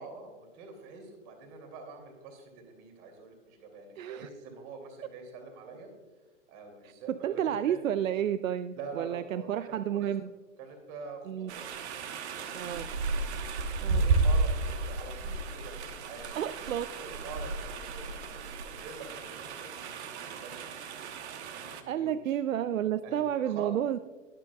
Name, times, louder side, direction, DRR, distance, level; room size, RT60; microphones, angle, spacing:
voice 1, 0.0-5.9 6.5-7.8 8.7-10.1 10.6-11.7 11.9-12.6 13.7-16.4 17.0-20.7 21.5-22.6 23.0-23.7, right 4 dB, 40° right, 3 dB, 2.8 m, -46 dB
voice 2, 4.0-4.3 6.8-10.3 11.3-11.5 12.5-12.8 13.8-14.0 16.3-16.9 21.9-24.0, right 10 dB, 85° right, 14 dB, 0.5 m, -31 dB
sound 1, 11.5-21.8, right 3 dB, 55° right, 1.3 m, -33 dB
22.0 x 7.6 x 2.3 m, 1.3 s
hypercardioid pair, 125°, 39 cm